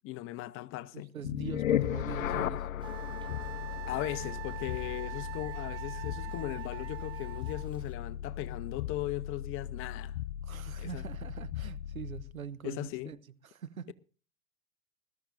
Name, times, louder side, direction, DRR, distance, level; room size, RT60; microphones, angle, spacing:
voice 1, 0.0-1.1 3.9-10.2 10.8-11.0 12.6-13.1, left 15 dB, 30° left, 0.8 m, -38 dB
voice 2, 0.9-2.7 10.4-13.2 13.4-13.9, right 8 dB, 85° right, 0.9 m, -43 dB
ab moon atmos, 1.2-12.4, left 11 dB, 75° left, 0.6 m, -36 dB
Bicycle, 2.8-7.9, right 4 dB, 10° right, 1.1 m, -56 dB
Wind instrument woodwind instrument, 2.8-7.7, right 17 dB, 50° right, 0.5 m, -44 dB
20.5 x 13.0 x 2.6 m
figure-of-eight pair, 95°, 41 cm